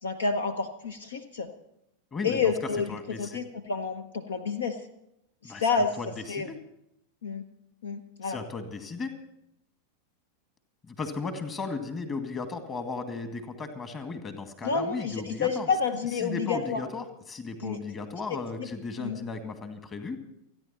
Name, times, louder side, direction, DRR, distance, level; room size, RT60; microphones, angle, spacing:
voice 1, 0.0-1.5 2.2-2.9 3.2-4.8 5.4-6.0 6.3-6.5 7.2-7.4 7.8-8.4 14.6-16.8 17.6-17.8 18.3-18.7 19.0-19.2, left 5 dB, 65° left, 10 dB, 1.0 m, -29 dB
voice 2, 2.1-2.5 2.9-3.4 5.4-6.6 8.2-9.1 10.8-15.7 16.2-20.2, left 4 dB, 25° left, 7 dB, 2.1 m, -36 dB
28.5 x 10.0 x 4.3 m, 0.80 s
figure-of-eight pair, 90°, 0 cm